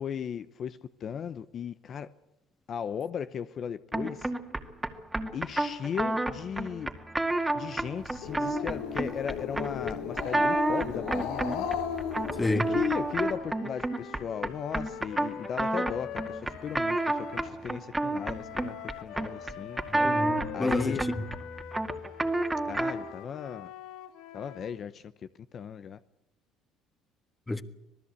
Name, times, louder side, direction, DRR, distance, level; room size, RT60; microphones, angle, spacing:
voice 1, 0.0-2.1 2.7-4.3 5.3-6.9 7.5-11.7 12.5-18.8 19.0-19.8 20.5-21.1 22.7-23.7 24.3-25.1 25.5-26.0, left 7 dB, 45° left, 0.9 m, -36 dB
sound 1, 3.9-23.1, right 2 dB, 10° right, 2.1 m, -31 dB
Growling, 8.0-13.3, left 7 dB, 90° left, 4.6 m, -35 dB
sound 2, 11.5-17.6 18.1-24.8, left 12 dB, 70° left, 1.5 m, -44 dB
voice 2, 12.4-12.7 19.9-21.2 27.5-27.6, left 2 dB, 15° left, 1.5 m, -29 dB
26.0 x 19.0 x 8.3 m
cardioid pair, 110°, 0 cm